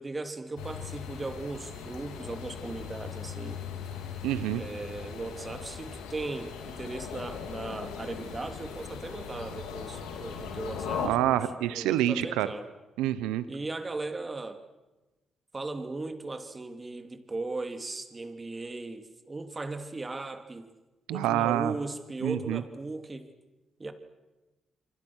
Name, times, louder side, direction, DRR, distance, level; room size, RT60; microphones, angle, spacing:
voice 1, 0.0-3.6 4.5-11.4 11.7-12.7 13.5-14.6 15.5-20.7 21.1-23.3 23.8-23.9, right 3 dB, 30° right, 7 dB, 3.2 m, -37 dB
sound 1, 0.6-11.1, left 7 dB, 85° left, 3.0 m, -39 dB
voice 2, 4.2-4.6 11.0-12.5 13.0-13.4 21.1-21.7 22.2-22.6, right 13 dB, 85° right, 14 dB, 1.0 m, -27 dB
29.0 x 24.5 x 6.4 m, 1.1 s
supercardioid pair, 50°, 0 cm